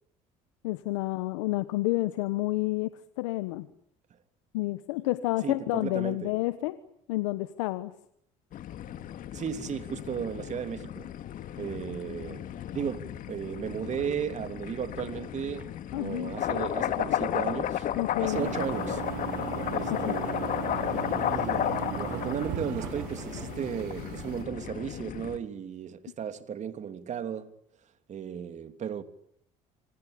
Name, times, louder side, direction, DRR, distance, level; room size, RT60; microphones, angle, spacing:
voice 1, 0.6-2.9 3.2-3.7 4.5-6.8 7.1-7.9 15.9-16.3 18.0-18.5 20.1-20.3, left 18 dB, 90° left, 1.3 m, -29 dB
voice 2, 5.4-6.3 9.3-11.1 11.6-12.4 12.7-17.9 18.2-19.0 19.7-20.4 21.3-27.5 28.1-29.0, right 8 dB, 50° right, 3.1 m, -35 dB
sound 1, 8.5-25.4, left 11 dB, 60° left, 2.3 m, -34 dB
sound 2, 15.6-23.5, right 1 dB, 10° right, 4.1 m, -50 dB
sound 3, 18.3-24.4, right 14 dB, 80° right, 4.0 m, -37 dB
27.0 x 25.5 x 8.7 m
supercardioid pair, 80°, 16 cm